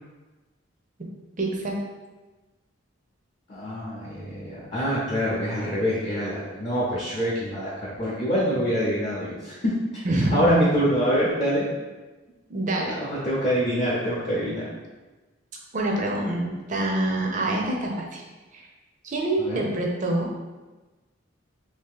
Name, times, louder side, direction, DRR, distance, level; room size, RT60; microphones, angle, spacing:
voice 1, 1.4-1.8 10.0-10.6 12.5-13.0 15.7-18.2 18.5-18.6 19.0-20.3, right 1 dB, 40° right, 0 dB, 0.5 m, -26 dB
voice 2, 3.5-10.0 10.3-11.7 12.9-14.6 19.4-19.6, equal, 30° left, -8 dB, 0.6 m, -25 dB
3.0 x 2.8 x 3.6 m, 1.2 s
head